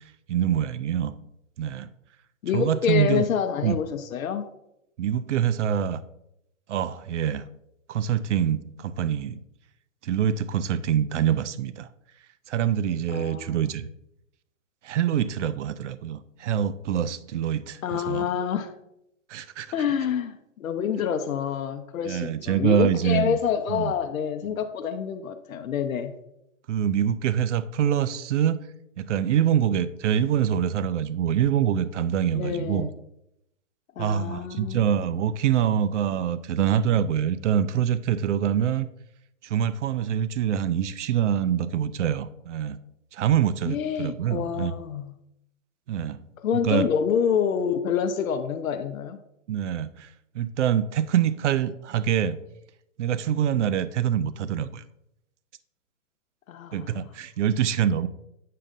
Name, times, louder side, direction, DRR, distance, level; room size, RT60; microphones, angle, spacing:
voice 1, 0.3-1.1 1.6-1.9 2.5-3.2 3.6-3.8 5.0-6.0 6.7-7.4 7.9-9.4 10.0-11.9 12.5-13.9 14.8-18.3 19.3-19.7 22.0-23.4 23.7-23.9 26.7-28.6 29.0-32.9 34.0-38.9 39.4-42.8 43.1-44.7 45.9-46.2 46.6-46.9 49.5-50.1 50.3-52.4 53.0-54.8 56.7-58.1, right 9 dB, 60° right, 0.5 m, -25 dB
voice 2, 2.4-4.4 13.1-13.7 17.8-18.7 19.7-26.1 32.3-32.9 34.0-34.8 43.7-45.1 46.4-49.2 56.5-57.1, left 8 dB, 90° left, 0.7 m, -27 dB
7.6 x 6.6 x 2.5 m
hypercardioid pair, 165°, 40 cm